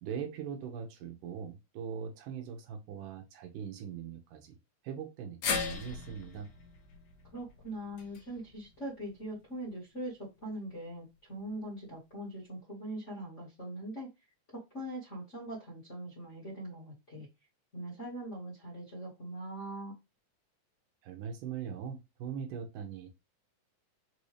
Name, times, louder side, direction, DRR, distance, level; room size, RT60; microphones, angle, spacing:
voice 1, 0.0-4.6 4.8-6.5 21.0-23.1, right 7 dB, 80° right, 5 dB, 2.3 m, -41 dB
sound 1, 5.4-9.7 10.0-10.1 11.3-11.4, left 5 dB, 75° left, 2.8 m, -39 dB
voice 2, 7.3-14.1 14.5-17.3 17.7-19.9, right 1 dB, 30° left, -5 dB, 1.5 m, -42 dB
6.2 x 2.7 x 3.2 m, 0.23 s
omnidirectional pair, 3.9 m